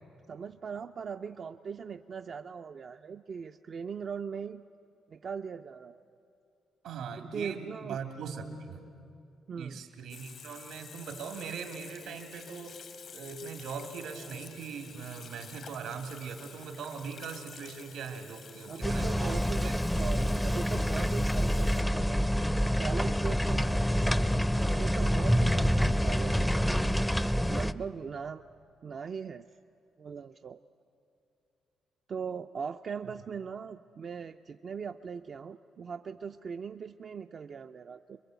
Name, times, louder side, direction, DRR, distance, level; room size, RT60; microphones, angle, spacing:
voice 1, 0.3-4.6 5.1-6.0 7.2-8.0 9.5-9.9 18.7-22.3 22.8-24.3 24.8-26.8 27.5-28.4 28.8-29.5 30.0-30.6 32.1-38.2, right 6 dB, 50° right, 7 dB, 0.5 m, -40 dB
voice 2, 6.8-8.8 9.6-12.8 13.1-19.7 25.3-25.5, right 6 dB, 85° right, 4 dB, 2.9 m, -41 dB
Water tap faucet / Sink (filling or washing), 10.1-21.8, left 6 dB, 55° left, 1.0 m, -50 dB
sound 1, 18.8-27.7, equal, 5° left, 0.5 m, -27 dB
26.5 x 22.5 x 8.1 m, 2.6 s
cardioid pair, 90°, 0 cm